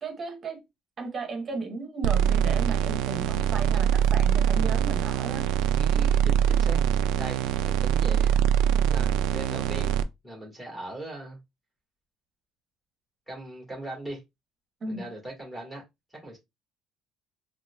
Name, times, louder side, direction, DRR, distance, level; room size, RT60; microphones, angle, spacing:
voice 1, 0.0-0.6 1.0-5.6 14.8-15.1, right 3 dB, 25° right, 1.0 m, -35 dB
sound 1, 2.0-10.0, right 9 dB, 90° right, 0.4 m, -23 dB
voice 2, 5.8-8.3 8.9-9.9 10.2-11.4 13.3-14.2 14.9-15.8 16.2-16.4, right 1 dB, 5° left, 1.5 m, -39 dB
4.0 x 2.8 x 2.3 m
cardioid pair, 170°, 0 cm